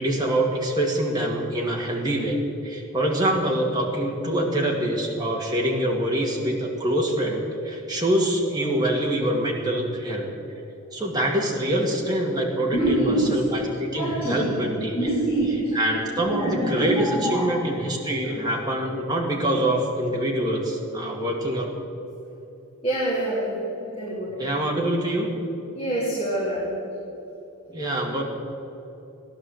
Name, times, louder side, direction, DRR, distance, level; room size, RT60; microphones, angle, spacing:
voice 1, 0.0-10.3 10.9-15.1 15.7-21.7 24.4-25.3 27.7-28.2, right 1 dB, 15° right, -2 dB, 2.1 m, -25 dB
voice 2, 12.7-13.4 13.9-14.6 14.9-15.8 16.2-17.6 18.2-18.4 22.8-24.4 25.7-26.8, right 1 dB, 25° left, -9 dB, 3.7 m, -26 dB
16.5 x 11.0 x 8.0 m, 2.9 s
head